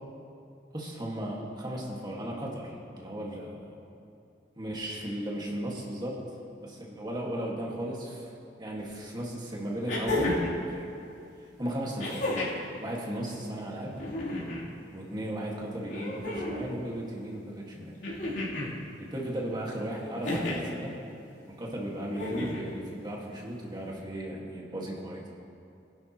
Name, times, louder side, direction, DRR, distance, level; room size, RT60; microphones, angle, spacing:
voice 1, 0.7-3.8 4.6-6.2 6.6-8.3 8.6-10.9 11.4-12.3 12.8-13.9 14.9-18.0 18.6-20.9 21.5-25.3, right 1 dB, 25° right, -3 dB, 1.8 m, -36 dB
sound 1, 8.8-8.9 9.9-10.6 12.0-12.7 13.9-14.7 15.9-16.7 18.0-18.7 20.2-20.7 22.1-22.7 24.0-24.1, left 1 dB, 70° left, 3.4 m, -32 dB
20.5 x 11.0 x 3.0 m, 2.6 s
head